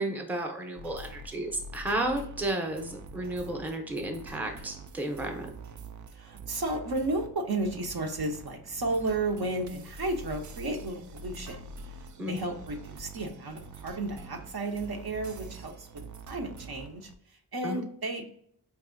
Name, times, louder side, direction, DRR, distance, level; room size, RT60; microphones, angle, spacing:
voice 1, 0.0-5.5 12.2-12.4 17.6-17.9, right 1 dB, 5° right, 3 dB, 0.6 m, -33 dB
sound 1, 0.8-17.1, right 3 dB, 45° right, 0.4 m, -45 dB
voice 2, 6.1-11.6 11.9-16.0 16.3-18.3, right 2 dB, 65° right, 3 dB, 0.8 m, -33 dB
4.7 x 2.6 x 2.5 m, 0.66 s
wide cardioid pair, 80°, 41 cm